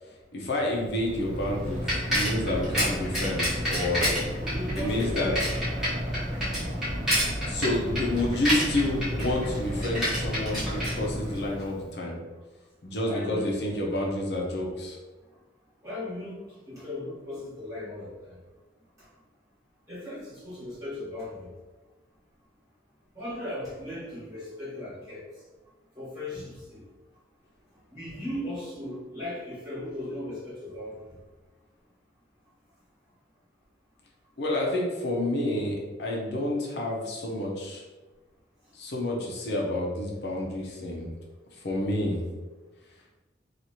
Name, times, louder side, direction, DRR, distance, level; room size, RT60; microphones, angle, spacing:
voice 1, 0.3-4.1 4.8-5.5 7.5-12.2 12.8-15.0 34.4-37.8 38.7-41.1 41.6-42.2, left 1 dB, 70° left, -2 dB, 0.6 m, -29 dB
Bicycle, 0.9-11.7, equal, 5° right, 1.1 m, -29 dB
voice 2, 4.4-5.4 13.0-13.5 15.8-18.4 19.9-21.5 23.1-25.2 25.9-26.8 27.9-30.9 40.3-40.7, left 1 dB, 20° right, -11 dB, 1.5 m, -37 dB
3.0 x 2.4 x 2.8 m, 1.2 s
head